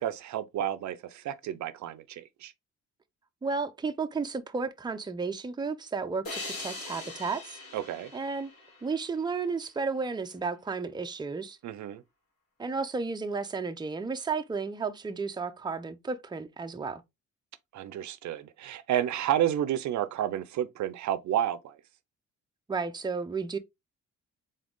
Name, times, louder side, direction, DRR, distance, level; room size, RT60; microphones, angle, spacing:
voice 1, 0.0-2.5 7.7-8.1 11.6-12.0 17.7-21.8, right 11 dB, 70° right, 0.6 m, -31 dB
voice 2, 3.4-7.6 8.1-8.5 8.8-11.6 12.6-17.0 22.7-23.6, right 4 dB, 15° right, 0.6 m, -33 dB
sound 1, 6.2-9.6, left 2 dB, 55° left, 2.4 m, -41 dB
3.9 x 3.8 x 3.6 m
cardioid pair, 90°, 30 cm